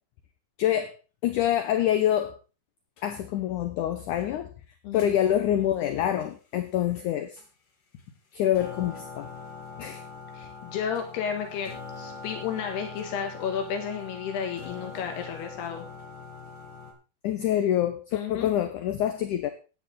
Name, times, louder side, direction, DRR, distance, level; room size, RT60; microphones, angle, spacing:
voice 1, 0.6-0.9 1.2-2.4 3.0-4.5 4.9-7.4 8.3-9.3 9.8-10.0 17.2-19.5, left 11 dB, 70° left, 8 dB, 2.0 m, -26 dB
sound 1, 3.0-3.1 5.0-5.1 7.0-7.1 7.4-7.5 8.0-8.1 8.4-16.9, left 4 dB, 55° left, 4.1 m, -42 dB
voice 2, 10.3-11.7 12.0-15.9 18.1-18.5, left 7 dB, 85° left, 3 dB, 3.7 m, -32 dB
13.5 x 9.9 x 3.9 m, 0.33 s
omnidirectional pair, 4.5 m